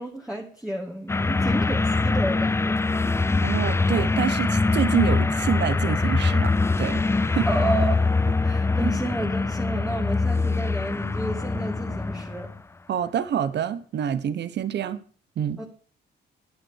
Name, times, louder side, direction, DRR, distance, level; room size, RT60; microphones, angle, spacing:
voice 1, 0.0-2.8 7.5-8.1 8.4-12.5 15.6-15.7, right 1 dB, 5° right, 2.0 m, -31 dB
sound 1, 1.1-12.5, left 3 dB, 15° left, 0.4 m, -23 dB
sound 2, 2.1-12.6, left 6 dB, 40° left, 2.3 m, -48 dB
voice 2, 3.4-7.5 8.8-8.9 12.9-15.0 15.4-15.6, right 9 dB, 60° right, 1.1 m, -27 dB
9.5 x 9.5 x 6.4 m
cardioid pair, 90°, 20 cm